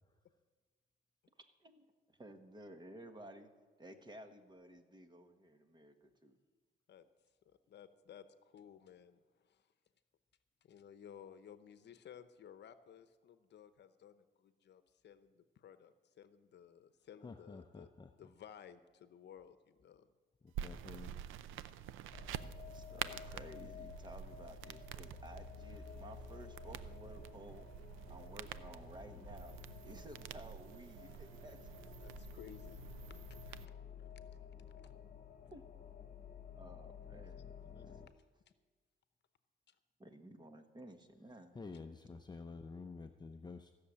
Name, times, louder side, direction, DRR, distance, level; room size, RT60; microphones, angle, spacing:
voice 1, 1.6-3.5 3.8-6.4 22.7-27.7 28.1-31.7 35.5-35.6 36.5-37.4 40.0-41.6, right 1 dB, 20° right, 7 dB, 1.5 m, -55 dB
voice 2, 7.5-9.6 10.6-17.9 18.2-20.1 32.0-32.8 33.1-33.6 34.8-34.9 37.6-37.8 39.7-39.8, left 8 dB, 60° left, 11 dB, 0.9 m, -57 dB
voice 3, 17.2-18.1 20.4-21.2 37.1-38.1 41.5-43.8, left 4 dB, 20° left, 6 dB, 0.7 m, -51 dB
sound 1, 20.5-33.7, right 10 dB, 90° right, 0.6 m, -48 dB
sound 2, 22.1-38.1, left 8 dB, 45° left, 1.2 m, -53 dB
15.5 x 6.7 x 8.7 m, 1.4 s
cardioid pair, 90°, 20 cm